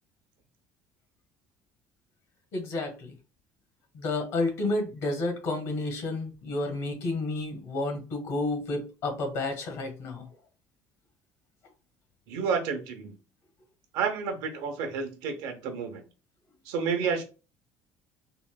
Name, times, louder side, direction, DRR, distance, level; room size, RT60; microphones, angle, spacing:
voice 1, 2.5-3.1 3.9-10.3, left 2 dB, 65° left, 1.2 m, -31 dB
voice 2, 12.3-13.2 13.9-16.0 16.6-17.2, right 5 dB, 85° right, 0.8 m, -30 dB
3.8 x 2.1 x 2.2 m
cardioid pair, 170°, 6 cm